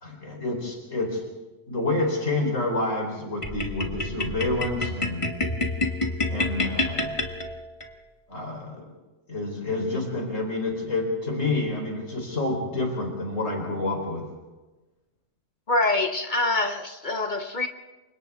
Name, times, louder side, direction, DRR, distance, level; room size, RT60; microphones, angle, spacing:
voice 1, 0.0-1.2 1.7-5.3 6.3-7.2 8.3-8.9 9.3-14.3, left 2 dB, 80° left, 4.2 m, -28 dB
sound 1, 3.4-7.9, left 2 dB, 25° left, 1.7 m, -28 dB
voice 2, 15.7-17.7, left 2 dB, 40° left, 0.9 m, -25 dB
29.5 x 25.0 x 3.5 m
omnidirectional pair, 1.3 m